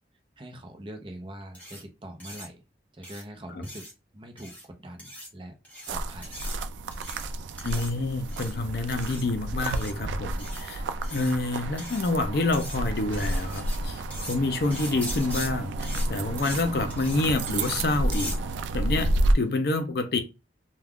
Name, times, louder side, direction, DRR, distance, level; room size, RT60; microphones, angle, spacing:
voice 1, 0.4-2.6 2.9-3.9 4.1-5.5 5.9-6.5, right 1 dB, 25° right, 0.5 m, -43 dB
sound 1, 1.5-1.8 2.2-2.5 3.0-3.2 3.6-3.9 4.4-4.6 5.0-5.3 5.6-5.9 6.2-6.6 6.9-7.3 7.6-7.9 8.3-8.5 8.9-9.2 9.6-9.9 10.4-10.6 11.0-11.4 11.8-12.1 12.5-12.8 13.1-13.8 14.1-14.4 14.7-15.5 15.8-16.1 16.4-16.6 16.9-17.2 17.5-17.8 18.1-18.4, equal, 10° left, 0.9 m, -40 dB
sound 2, 5.9-19.3, right 2 dB, 85° right, 0.3 m, -30 dB
voice 2, 7.6-10.8 11.1-18.3 18.7-20.2, left 2 dB, 55° left, 0.5 m, -28 dB
2.3 x 2.2 x 3.4 m
head